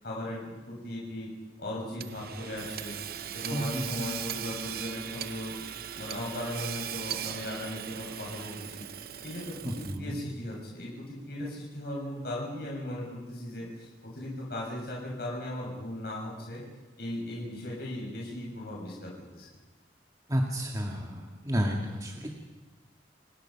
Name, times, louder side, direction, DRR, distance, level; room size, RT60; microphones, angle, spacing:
voice 1, 0.0-1.3 1.6-3.0 3.3-5.6 5.9-8.8 9.2-16.6 17.0-19.5, left 1 dB, 60° left, -3 dB, 7.5 m, -37 dB
Hammer / Sawing, 2.0-10.2, right 10 dB, 55° right, 0.8 m, -39 dB
voice 2, 3.5-4.2 9.6-10.3 20.3-22.3, equal, 20° right, 1 dB, 1.9 m, -31 dB
29.5 x 19.0 x 5.9 m, 1.2 s
head